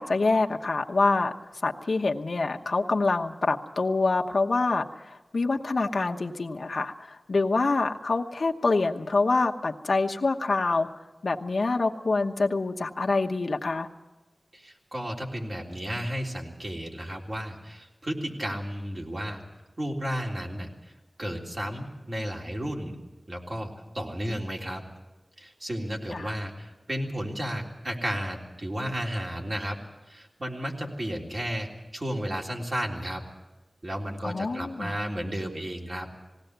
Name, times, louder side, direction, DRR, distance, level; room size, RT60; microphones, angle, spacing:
voice 1, 0.0-1.3 1.6-5.0 5.3-10.9 11.2-13.9 26.1-26.3 34.2-35.0, left 3 dB, 85° left, 3 dB, 1.1 m, -26 dB
voice 2, 14.5-19.4 19.8-20.9 21.2-22.9 23.3-24.9 25.4-29.8 30.1-33.2 33.8-36.1, equal, 50° right, -1 dB, 3.5 m, -33 dB
19.5 x 17.5 x 8.1 m, 1.1 s
wide cardioid pair, 65°, 0 cm